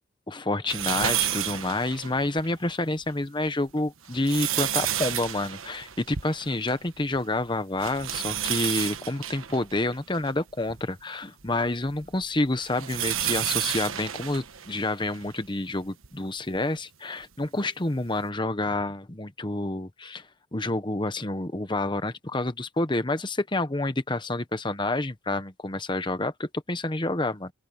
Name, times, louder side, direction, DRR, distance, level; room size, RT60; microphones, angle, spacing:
voice 1, 0.3-27.5, left 2 dB, 25° left, 1.1 m, -28 dB
sound 1, 0.7-2.5 3.0-3.1 3.9-6.9 7.2-7.3 7.8-10.8 11.4-15.3 16.0-16.1 17.4-17.5, right 11 dB, 75° right, 1.3 m, -31 dB
open air
head